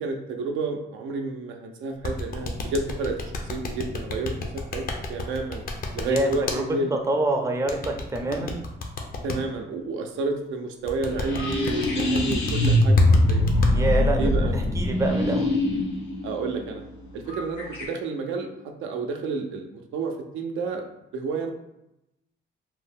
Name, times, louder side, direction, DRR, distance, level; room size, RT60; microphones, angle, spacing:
voice 1, 0.0-3.2 3.5-4.8 5.1-5.6 5.9-7.0 9.2-13.0 13.3-13.4 14.1-14.5 15.1-15.2 16.2-16.8 17.1-18.5 18.8-20.8 21.1-21.5, right 3 dB, 80° right, 3 dB, 0.5 m, -30 dB
sound 1, 2.0-6.6 7.7-9.4 10.9-13.7, left 3 dB, 45° left, 0.6 m, -29 dB
voice 2, 6.0-6.6 6.9-8.5 13.7-15.5, right 2 dB, 15° right, 2 dB, 0.5 m, -26 dB
sound 2, 11.1-17.8, left 1 dB, 80° left, 1.0 m, -23 dB
2.7 x 2.0 x 3.5 m, 0.87 s
cardioid pair, 90°, 20 cm